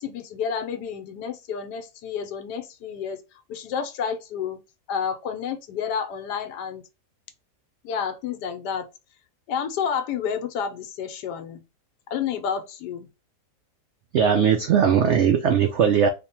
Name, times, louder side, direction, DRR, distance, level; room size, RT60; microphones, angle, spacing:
voice 1, 0.0-4.6 4.9-6.8 7.8-8.9 9.5-11.6 12.1-13.1, left 7 dB, 80° left, 1.3 m, -30 dB
voice 2, 14.1-16.1, right 7 dB, 90° right, 0.6 m, -19 dB
3.2 x 2.2 x 4.2 m
omnidirectional pair, 1.8 m